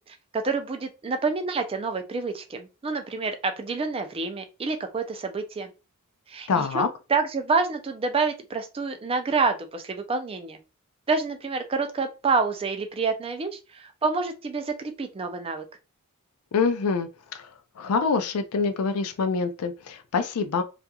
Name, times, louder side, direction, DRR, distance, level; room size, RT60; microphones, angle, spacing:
voice 1, 0.1-5.7 6.3-10.6 11.1-15.6, right 4 dB, 25° right, 0.4 m, -28 dB
voice 2, 6.5-6.9 16.5-17.1 17.3-17.5 17.8-20.6, left 5 dB, 75° left, 0.4 m, -25 dB
2.8 x 2.4 x 2.2 m
head